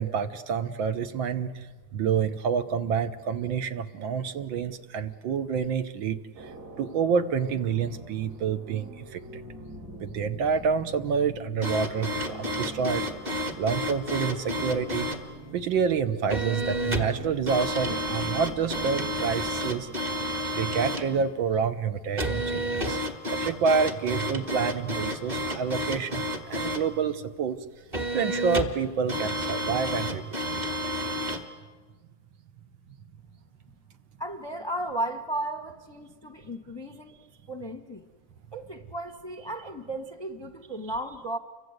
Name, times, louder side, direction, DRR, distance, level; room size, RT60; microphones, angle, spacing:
voice 1, 0.0-1.7 1.9-6.5 6.8-9.4 10.0-13.1 13.6-15.1 15.5-19.9 20.5-23.0 23.3-27.6 28.1-30.4, right 6 dB, 70° right, 10 dB, 1.8 m, -28 dB
sound 1, 6.3-21.3, right 1 dB, 50° right, 3.3 m, -44 dB
sound 2, 11.6-15.2 16.3-17.2 17.5-21.1 22.2-26.9 27.9-28.8 29.1-31.4, equal, 25° right, 1.8 m, -30 dB
voice 2, 34.2-37.2 37.5-38.1 38.5-41.4, right 1 dB, 20° left, 7 dB, 0.9 m, -35 dB
30.0 x 24.0 x 8.0 m, 1.4 s
omnidirectional pair, 2.2 m